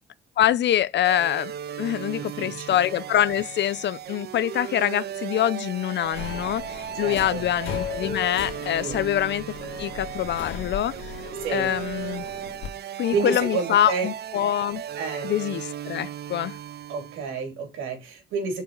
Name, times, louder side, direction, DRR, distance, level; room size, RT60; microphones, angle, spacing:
voice 1, 0.4-1.5 1.8-9.4 9.8-11.2 11.5-12.2 13.0-14.8 15.2-16.6, left 11 dB, 65° left, 0.7 m, -25 dB
sound 1, 1.0-17.5, right 9 dB, 55° right, 0.5 m, -36 dB
voice 2, 2.2-2.7 6.9-7.4 8.8-9.0 11.4-11.7 12.8-14.1 15.0-15.3 16.9-18.6, right 5 dB, 90° right, 2.9 m, -30 dB
Subway metro underground, 6.1-12.7, left 7 dB, 80° left, 2.2 m, -37 dB
6.8 x 4.7 x 3.9 m
cardioid pair, 90°, 20 cm